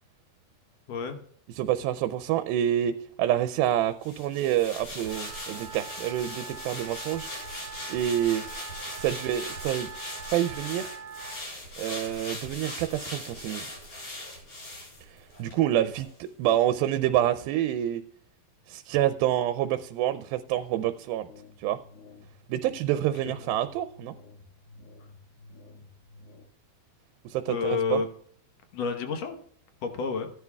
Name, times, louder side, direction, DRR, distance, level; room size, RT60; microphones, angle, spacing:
voice 1, 1.6-7.3 7.9-8.4 8.9-9.9 10.3-10.9 11.8-13.6 15.4-18.0 18.7-21.3 21.6-21.8 22.5-24.1 27.3-28.0, right 12 dB, 90° right, 10 dB, 2.4 m, -27 dB
sound 1, 4.0-15.6 15.9-16.1, left 1 dB, 50° left, 5.2 m, -40 dB
Wind instrument woodwind instrument, 5.0-11.4, right 6 dB, 70° right, 2.1 m, -43 dB
sound 2, 21.3-26.5, left 3 dB, 85° left, 3.6 m, -52 dB
voice 2, 27.5-28.1 28.7-29.4 29.8-30.3, left 5 dB, 65° left, 6 dB, 1.7 m, -29 dB
15.5 x 10.5 x 2.3 m, 0.65 s
omnidirectional pair, 4.2 m